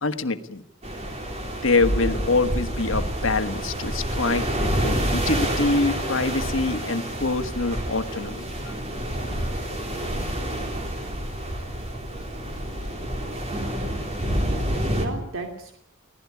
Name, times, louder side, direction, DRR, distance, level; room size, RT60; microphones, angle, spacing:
voice 1, 0.0-0.6 1.6-4.4 4.8-8.3 8.7-8.8, left 3 dB, 70° left, 8 dB, 1.5 m, -25 dB
sound 1, 0.8-15.1, equal, 35° right, 3.9 m, -28 dB
voice 2, 14.1-15.8, right 3 dB, 90° right, 4 dB, 2.7 m, -37 dB
24.5 x 17.0 x 8.4 m, 0.72 s
head